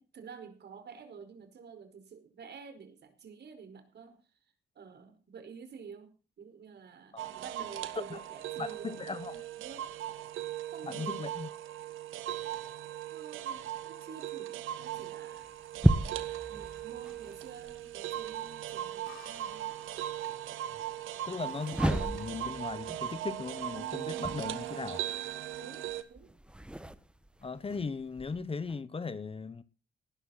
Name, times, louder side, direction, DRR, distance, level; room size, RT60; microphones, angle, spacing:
voice 1, 0.0-4.2 4.7-8.9 9.3-9.9 10.7-11.2 13.1-15.5 15.8-19.6 25.6-26.3, right 6 dB, 60° right, 4.9 m, -50 dB
sound 1, 7.2-26.0, right 12 dB, 85° right, 1.7 m, -39 dB
voice 2, 8.6-9.4 10.8-11.5 21.3-25.1 27.4-29.6, left 4 dB, 30° left, 1.2 m, -38 dB
sound 2, 15.3-19.6 21.3-28.8, right 1 dB, 5° right, 1.3 m, -35 dB
sound 3, 19.1-22.6, left 10 dB, 85° left, 5.6 m, -59 dB
18.5 x 12.5 x 4.2 m
cardioid pair, 90°, 20 cm